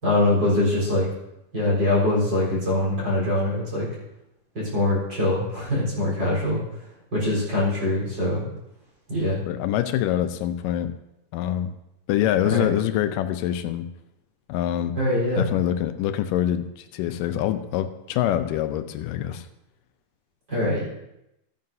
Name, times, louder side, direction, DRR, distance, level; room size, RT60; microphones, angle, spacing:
voice 1, 0.0-1.1 1.5-3.9 4.5-6.6 7.1-8.5 9.1-9.4 12.5-12.7 15.0-15.5 20.5-20.8, left 1 dB, 30° right, -6 dB, 4.5 m, -23 dB
voice 2, 9.5-10.9 11.3-11.8 12.1-13.9 14.5-15.0 15.4-19.5, left 11 dB, 90° left, 10 dB, 2.2 m, -25 dB
14.5 x 9.3 x 2.7 m, 0.88 s
omnidirectional pair, 3.8 m